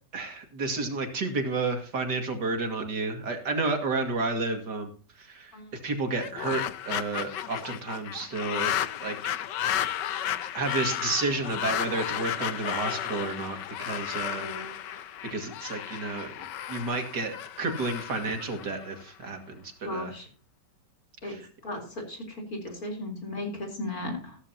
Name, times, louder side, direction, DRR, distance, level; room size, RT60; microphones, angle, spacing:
voice 1, 0.1-4.9 5.2-5.5 5.8-8.8 9.0-9.3 10.1-10.3 10.5-14.5 15.2-20.1 21.2-21.5, right 3 dB, 80° right, 5 dB, 2.8 m, -31 dB
sound 1, 6.1-19.3, left 11 dB, 85° left, 1.5 m, -33 dB
voice 2, 14.4-14.7 19.8-20.3 21.2-21.4 21.6-24.4, left 1 dB, 55° left, 3 dB, 4.4 m, -36 dB
15.0 x 13.5 x 2.9 m, 0.38 s
omnidirectional pair, 1.8 m